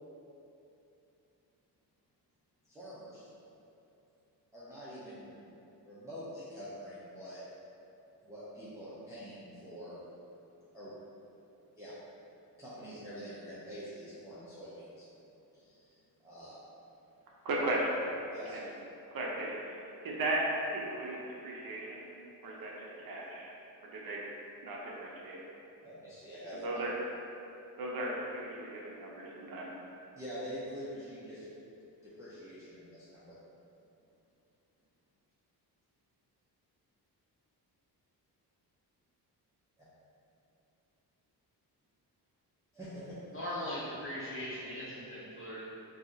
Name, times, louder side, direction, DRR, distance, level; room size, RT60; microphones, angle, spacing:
voice 1, 2.6-3.3 4.5-5.4 5.8-7.4 8.2-10.0 10.7-10.9 11.8-11.9 12.6-15.0 15.5-16.6 18.3-18.6 25.8-26.8 30.1-31.8 32.0-33.4 39.8-39.9 42.7-43.2, equal, 5° right, -12 dB, 0.5 m, -46 dB
voice 2, 17.4-18.0 18.5-18.7 19.1-20.4 20.7-22.0 22.4-23.5 23.8-24.2 24.6-25.4 26.6-26.9 27.8-29.7, right 2 dB, 60° right, -3 dB, 0.6 m, -36 dB
voice 3, 43.3-45.6, left 1 dB, 30° left, -9 dB, 1.0 m, -39 dB
2.7 x 2.3 x 3.8 m, 2.8 s
cardioid pair, 120°, 41 cm